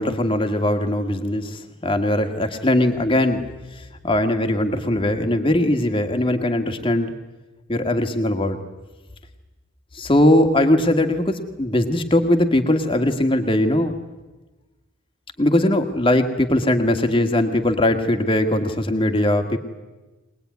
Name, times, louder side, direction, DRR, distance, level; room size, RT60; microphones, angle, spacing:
voice 1, 0.0-3.5 4.0-7.1 7.7-8.6 9.9-13.9 15.4-19.6, left 1 dB, 25° left, 6 dB, 1.8 m, -20 dB
22.5 x 20.5 x 9.5 m, 1.2 s
head